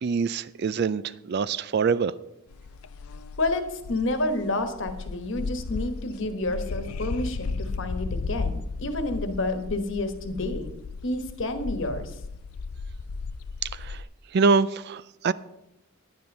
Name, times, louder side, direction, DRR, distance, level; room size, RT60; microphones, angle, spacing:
voice 1, 0.0-2.1 13.6-14.0 14.3-15.3, right 5 dB, 50° right, 0.3 m, -25 dB
sound 1, 2.5-14.0, left 4 dB, 90° left, 0.5 m, -35 dB
voice 2, 3.4-10.7 11.0-12.2, left 2 dB, 60° left, 1.3 m, -29 dB
10.5 x 9.6 x 5.4 m
head